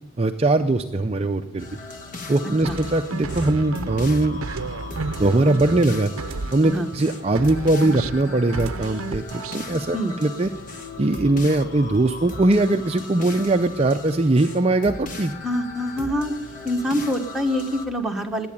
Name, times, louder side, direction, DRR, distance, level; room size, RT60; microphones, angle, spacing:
voice 1, 0.2-1.6 2.3-4.4 5.2-6.1 6.5-10.5 11.0-15.3, right 2 dB, 25° right, 5 dB, 0.5 m, -21 dB
sound 1, 1.0-17.1, left 3 dB, 80° left, 6.7 m, -48 dB
sound 2, 1.6-17.8, left 3 dB, 35° left, 1.5 m, -38 dB
sound 3, 2.6-7.1 7.3-9.7, right 4 dB, 70° right, 0.6 m, -32 dB
voice 2, 15.4-16.3 16.6-18.5, equal, ahead, 1 dB, 1.3 m, -25 dB
19.0 x 8.7 x 8.7 m, 0.97 s
head